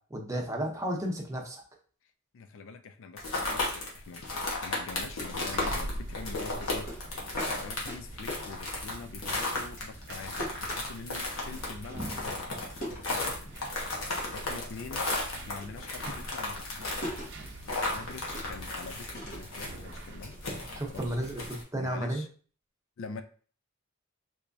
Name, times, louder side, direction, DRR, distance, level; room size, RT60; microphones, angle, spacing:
voice 1, 0.1-1.6 20.7-22.3, right 1 dB, 15° right, 0 dB, 0.7 m, -33 dB
voice 2, 2.3-6.9 7.6-12.5 12.8-13.5 14.3-15.0 15.4-17.2 17.9-20.4 20.9-21.2 21.7-22.3 23.0-23.2, left 4 dB, 65° left, 8 dB, 0.4 m, -45 dB
sound 1, 3.2-21.6, left 2 dB, 85° left, 1.1 m, -34 dB
sound 2, 4.9-21.5, right 1 dB, 60° right, 0.7 m, -44 dB
sound 3, 6.6-9.3 9.6-13.8 14.1-14.7 15.0-21.2, equal, 45° left, 1.3 m, -43 dB
3.5 x 3.0 x 2.6 m, 0.42 s
head